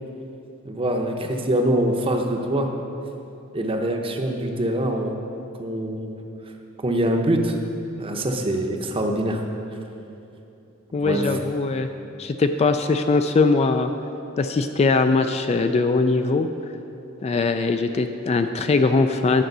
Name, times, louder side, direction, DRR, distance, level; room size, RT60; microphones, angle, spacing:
voice 1, 0.6-2.7 3.5-5.2 5.6-6.2 6.8-7.6 8.0-9.4 11.0-11.3, right 1 dB, 25° right, 3 dB, 0.7 m, -24 dB
voice 2, 10.9-11.9 12.2-13.9 14.4-16.5 17.2-19.4, left 3 dB, 30° left, 7 dB, 0.3 m, -21 dB
10.5 x 5.0 x 6.7 m, 2.9 s
head